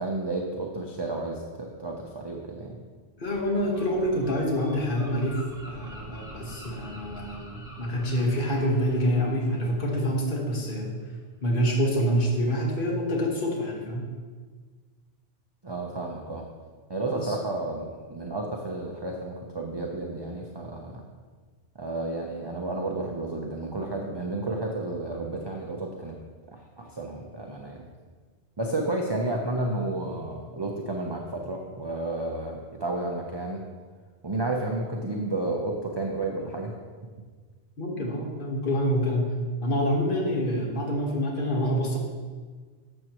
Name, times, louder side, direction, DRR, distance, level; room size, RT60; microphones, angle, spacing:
voice 1, 0.0-2.8 15.6-16.4 16.9-21.0 21.8-26.2 26.5-27.8 28.6-33.6 34.2-36.7, right 2 dB, 25° right, 0 dB, 0.7 m, -31 dB
voice 2, 3.2-5.4 5.7-10.9 11.4-14.1 17.1-17.4 37.8-39.3 39.6-42.0, equal, 50° left, -1 dB, 1.7 m, -26 dB
Gull seagull, 3.2-10.7, right 1 dB, 5° right, 1.9 m, -46 dB
13.0 x 7.6 x 3.0 m, 1.5 s
omnidirectional pair, 1.2 m